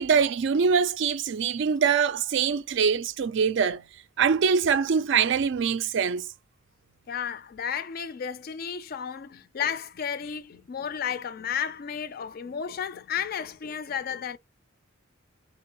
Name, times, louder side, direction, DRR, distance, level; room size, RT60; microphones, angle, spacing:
voice 1, 0.0-3.8 4.2-6.3, right 6 dB, 60° right, 0.4 m, -23 dB
voice 2, 7.1-14.4, left 7 dB, 45° left, 0.4 m, -33 dB
3.8 x 3.3 x 2.8 m
head